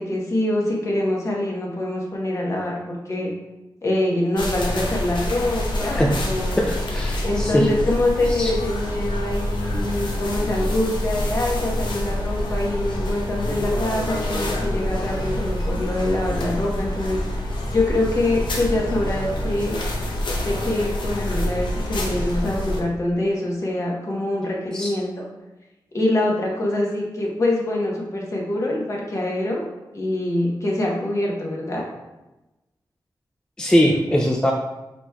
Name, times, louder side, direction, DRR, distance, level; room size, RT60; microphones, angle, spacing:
voice 1, 0.0-3.3 3.8-6.6 7.2-17.4 17.7-19.8 20.4-25.2 25.9-29.7 29.9-31.9, left 1 dB, 40° left, -2 dB, 0.9 m, -24 dB
sound 1, 4.4-22.8, left 1 dB, 85° left, 0.7 m, -26 dB
voice 2, 5.8-6.2 6.6-7.7 8.3-8.5 24.7-24.9 33.6-34.5, equal, 10° left, 0 dB, 0.3 m, -21 dB
4.6 x 4.1 x 2.2 m, 1.0 s
wide cardioid pair, 145°, 8 cm